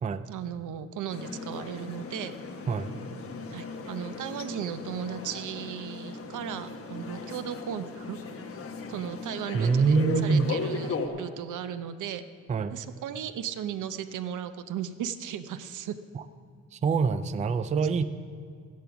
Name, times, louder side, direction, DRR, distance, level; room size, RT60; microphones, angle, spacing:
voice 1, 0.3-2.3 3.5-8.2 8.9-10.0 10.2-12.2 12.7-16.0, right 9 dB, 90° right, 11 dB, 0.8 m, -36 dB
sound 1, 1.1-11.1, left 4 dB, 50° left, 1.2 m, -37 dB
voice 2, 9.5-10.5 12.5-12.8 16.1-16.2 16.7-18.0, right 5 dB, 25° right, 12 dB, 0.4 m, -25 dB
14.0 x 10.5 x 6.0 m, 2.3 s
wide cardioid pair, 170°, 30 cm